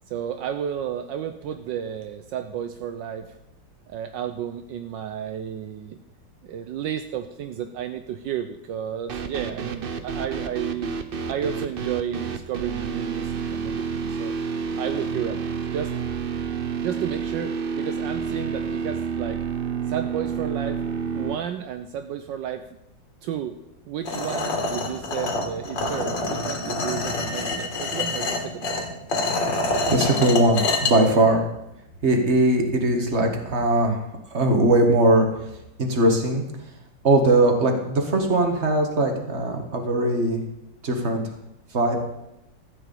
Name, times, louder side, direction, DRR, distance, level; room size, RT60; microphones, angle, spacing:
voice 1, 0.1-3.4 3.9-6.0 6.4-10.9 11.3-14.3 14.8-15.4 15.7-15.9 16.8-19.4 19.9-20.9 21.1-22.6 23.2-23.6 23.9-28.8, right 9 dB, 75° right, 8 dB, 1.3 m, -32 dB
sound 1, 9.1-21.3, right 6 dB, 55° right, 0.6 m, -29 dB
sound 2, 24.1-30.9, left 2 dB, 70° left, 2.7 m, -26 dB
voice 2, 29.9-31.4 32.0-34.0 34.3-35.3 35.8-36.4 37.0-40.4 40.8-41.2 41.7-42.0, right 1 dB, 35° right, 3 dB, 2.0 m, -20 dB
14.0 x 5.7 x 8.5 m, 0.87 s
omnidirectional pair, 2.1 m